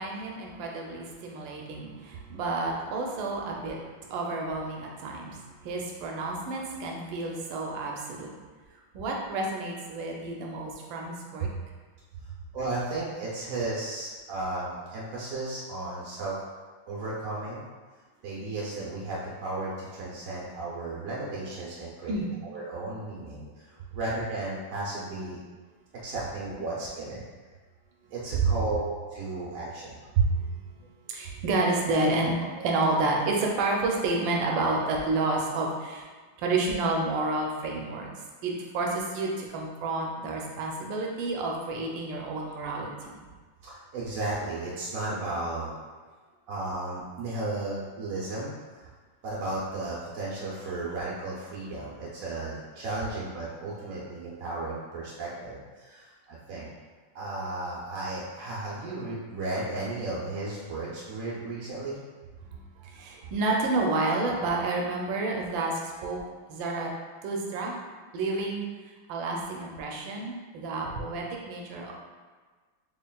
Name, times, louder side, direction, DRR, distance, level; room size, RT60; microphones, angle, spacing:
voice 1, 0.0-8.3 8.9-11.5 22.1-22.3 28.4-28.6 30.3-30.5 30.8-36.1 36.4-38.1 38.4-43.2 62.4-66.2 66.5-66.9 67.2-67.8 68.1-68.7 69.1-71.9, right 2 dB, 85° right, -1 dB, 1.3 m, -30 dB
voice 2, 12.5-16.3 16.9-17.6 18.2-25.4 26.0-27.2 28.1-30.0 43.6-45.7 46.5-48.9 49.2-56.7 57.1-62.0, right 2 dB, 65° right, -6 dB, 0.8 m, -34 dB
4.3 x 3.2 x 2.2 m, 1.4 s
omnidirectional pair, 2.0 m